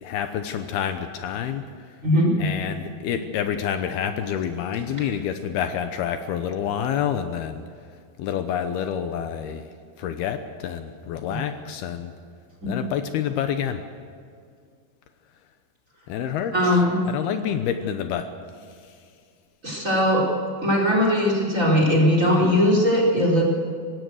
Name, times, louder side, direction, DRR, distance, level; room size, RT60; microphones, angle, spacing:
voice 1, 0.0-1.6 2.4-7.6 8.2-9.7 10.0-12.1 12.7-13.8 16.1-18.3, left 9 dB, 75° left, 8 dB, 2.9 m, -28 dB
voice 2, 2.0-2.4 11.3-11.4 12.6-12.7 16.5-17.0 19.6-20.3 20.6-23.4, equal, 20° right, -1 dB, 4.6 m, -19 dB
24.5 x 19.0 x 6.5 m, 2.2 s
omnidirectional pair, 4.7 m